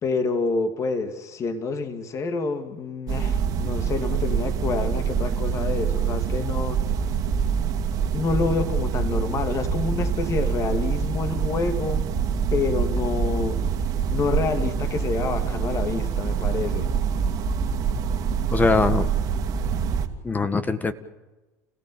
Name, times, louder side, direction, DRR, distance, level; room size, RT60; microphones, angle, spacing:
voice 1, 0.0-6.8 8.1-12.1 12.5-13.6 14.1-16.9, left 4 dB, 40° left, 2.5 m, -28 dB
sound 1, 3.1-20.1, right 6 dB, 50° right, 2.6 m, -25 dB
voice 2, 18.5-19.1 20.2-20.9, left 4 dB, 20° left, 1.7 m, -22 dB
29.5 x 16.0 x 8.8 m
hypercardioid pair, 90°, 8 cm